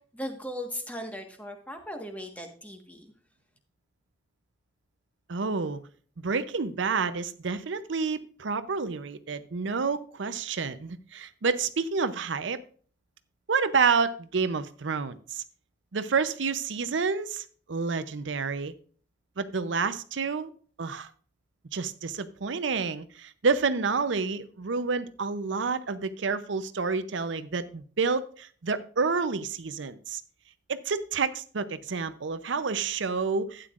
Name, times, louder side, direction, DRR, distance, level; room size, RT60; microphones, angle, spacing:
voice 1, 0.1-3.1, equal, 10° left, 4 dB, 1.4 m, -38 dB
voice 2, 5.3-5.8 6.2-12.6 13.5-15.4 15.9-18.7 19.4-20.5 20.8-21.1 21.7-30.2 30.7-33.7, right 5 dB, 75° right, 12 dB, 0.6 m, -29 dB
12.0 x 9.1 x 2.5 m, 0.43 s
head